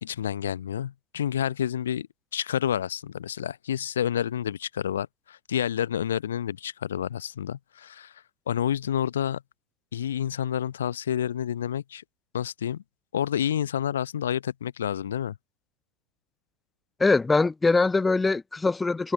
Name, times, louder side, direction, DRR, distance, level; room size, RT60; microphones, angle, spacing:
voice 1, 0.0-8.1 8.5-9.4 9.9-12.0 12.3-12.8 13.1-15.4, left 9 dB, 65° left, 0.9 m, -29 dB
voice 2, 17.0-19.1, left 3 dB, 10° left, 0.3 m, -22 dB
figure-of-eight pair, 90°, 0 cm